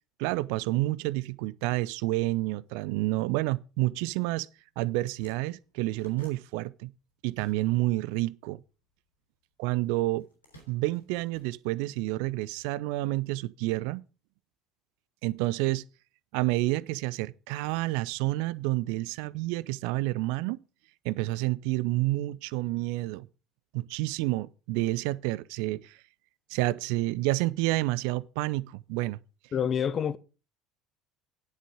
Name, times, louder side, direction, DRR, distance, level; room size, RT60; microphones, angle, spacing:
voice 1, 0.2-4.5 4.8-6.9 7.2-8.6 9.6-10.2 10.7-14.0 15.2-15.8 16.3-20.6 21.0-23.3 23.7-26.0 26.5-29.2, right 19 dB, 60° right, 0.4 m, -29 dB
sound 1, 4.6-4.7 4.9-8.0 8.3-9.5 10.1-12.1, right 1 dB, 85° left, 3.6 m, -57 dB
voice 2, 29.5-30.2, left 8 dB, 35° left, 0.7 m, -27 dB
9.9 x 8.1 x 4.8 m
figure-of-eight pair, 65°, 0 cm